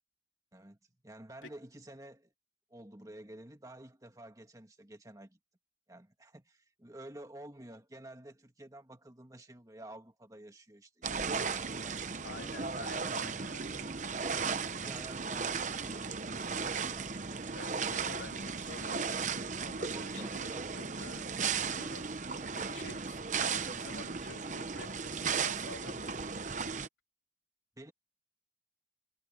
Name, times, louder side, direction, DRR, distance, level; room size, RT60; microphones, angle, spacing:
voice 1, 1.0-2.3 2.7-5.4 5.9-12.5 14.0-17.6 19.9-20.8 27.8-27.9, right 1 dB, 20° right, 1.9 m, -51 dB
sound 1, 11.0-26.9, right 5 dB, 40° right, 0.9 m, -36 dB
voice 2, 12.2-13.9 17.5-19.1 19.7-20.5 20.7-22.1 22.5-26.2, left 3 dB, 85° left, 3.4 m, -50 dB
head